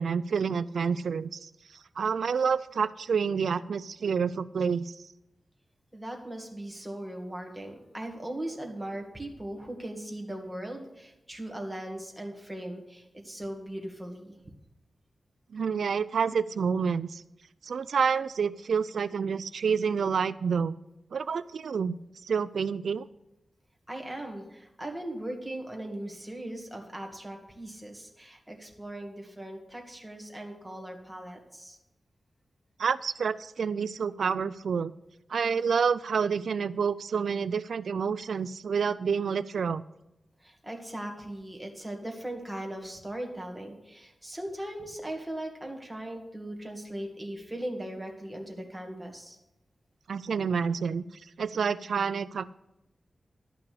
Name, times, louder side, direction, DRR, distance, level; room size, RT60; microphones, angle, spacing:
voice 1, 0.0-5.1 15.5-17.2 17.6-20.8 21.1-23.1 32.8-34.9 35.3-39.8 50.1-52.5, right 6 dB, 90° right, 15 dB, 0.3 m, -28 dB
voice 2, 5.9-14.4 23.9-31.8 40.4-49.4, right 1 dB, 5° right, 1 dB, 2.2 m, -39 dB
12.5 x 5.8 x 8.5 m, 0.92 s
wide cardioid pair, 130°, 0 cm